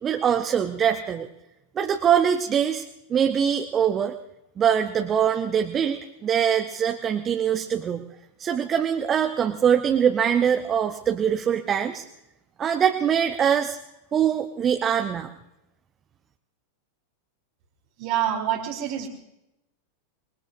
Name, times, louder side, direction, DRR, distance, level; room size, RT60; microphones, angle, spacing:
voice 1, 0.0-1.3 1.8-2.8 3.1-4.1 4.6-8.1 8.4-12.0 12.6-13.8 14.1-15.3, right 8 dB, 25° right, 6 dB, 0.8 m, -23 dB
voice 2, 18.0-19.1, right 11 dB, 45° right, -1 dB, 2.0 m, -26 dB
26.0 x 20.5 x 2.6 m, 0.88 s
figure-of-eight pair, 90°, 0 cm